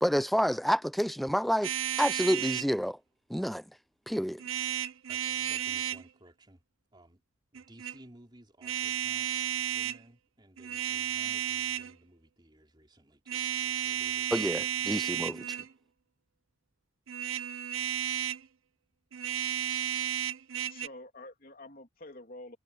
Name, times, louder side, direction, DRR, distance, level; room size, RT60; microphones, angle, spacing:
voice 1, 0.0-3.0 3.3-3.6 4.1-4.4 14.3-15.6, equal, ahead, 0.5 m, -29 dB
sound 1, 1.6-2.7 4.4-6.0 7.5-8.0 8.6-10.0 10.6-11.9 13.3-15.7 17.1-18.5 19.1-20.9, right 10 dB, 85° right, 0.6 m, -33 dB
voice 2, 5.1-6.6 6.9-7.2 7.5-9.3 9.6-14.3, right 1 dB, 25° right, 3.5 m, -57 dB
voice 3, 20.6-22.6, left 2 dB, 45° left, 3.1 m, -47 dB
head